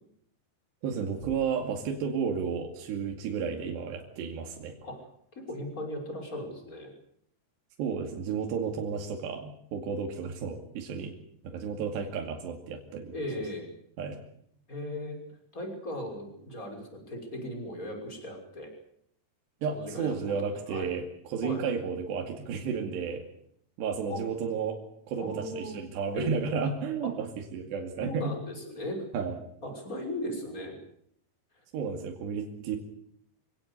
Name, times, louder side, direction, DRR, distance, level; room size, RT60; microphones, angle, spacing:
voice 1, 0.8-4.7 7.8-11.1 11.4-13.2 14.0-14.2 19.6-23.2 23.8-24.8 25.1-28.3 29.1-29.4 31.7-32.8, right 6 dB, 75° right, 2 dB, 4.5 m, -32 dB
voice 2, 5.3-6.9 13.1-13.7 14.7-15.2 15.5-18.7 19.7-20.9 21.4-21.6 24.1-24.2 25.2-25.8 26.1-26.4 27.0-27.1 28.0-29.1 29.6-30.8, left 1 dB, 20° left, 2 dB, 6.1 m, -37 dB
26.0 x 17.5 x 8.5 m, 0.70 s
omnidirectional pair, 5.1 m